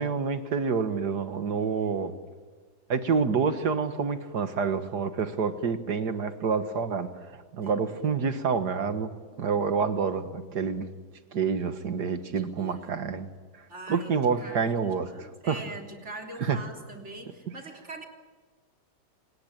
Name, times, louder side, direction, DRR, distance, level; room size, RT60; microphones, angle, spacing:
voice 1, 0.0-2.1 2.9-7.1 7.5-9.1 9.4-10.9 11.3-13.3 13.9-15.6 16.4-16.6, right 5 dB, 70° right, 10 dB, 2.1 m, -28 dB
voice 2, 7.6-8.1 12.6-13.0 13.7-18.1, right 2 dB, 40° right, 2 dB, 3.7 m, -43 dB
27.0 x 19.5 x 9.1 m, 1.5 s
omnidirectional pair, 1.8 m